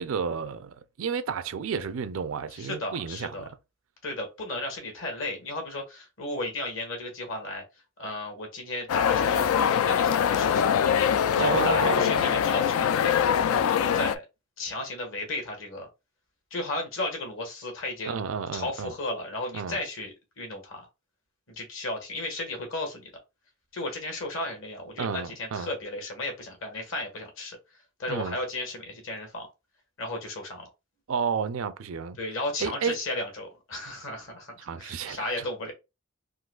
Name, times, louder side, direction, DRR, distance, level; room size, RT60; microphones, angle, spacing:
voice 1, 0.0-3.5 11.4-12.4 18.1-18.9 19.5-19.8 25.0-25.7 28.1-28.4 31.1-32.2 32.6-32.9 34.6-35.5, right 6 dB, 65° right, 0.4 m, -31 dB
voice 2, 2.5-3.5 4.0-7.6 8.0-10.8 11.3-14.2 14.6-15.9 16.5-18.2 18.5-20.9 21.5-23.1 23.7-27.6 28.0-29.5 30.0-30.7 32.2-35.7, left 2 dB, 60° left, 1.4 m, -34 dB
sound 1, 8.9-14.2, left 8 dB, 80° left, 0.3 m, -23 dB
3.8 x 2.6 x 2.3 m
head